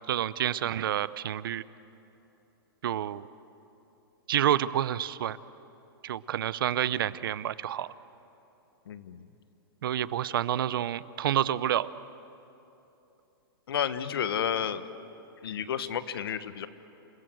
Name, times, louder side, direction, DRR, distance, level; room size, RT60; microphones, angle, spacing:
voice 1, 0.1-1.6 2.8-3.3 4.3-5.4 6.0-7.9 9.8-11.9, right 11 dB, 65° right, 17 dB, 0.7 m, -28 dB
voice 2, 8.9-9.3 13.7-14.8 15.4-16.7, left 8 dB, 75° left, 12 dB, 1.3 m, -31 dB
28.5 x 20.5 x 7.9 m, 3.0 s
hypercardioid pair, 160°, 12 cm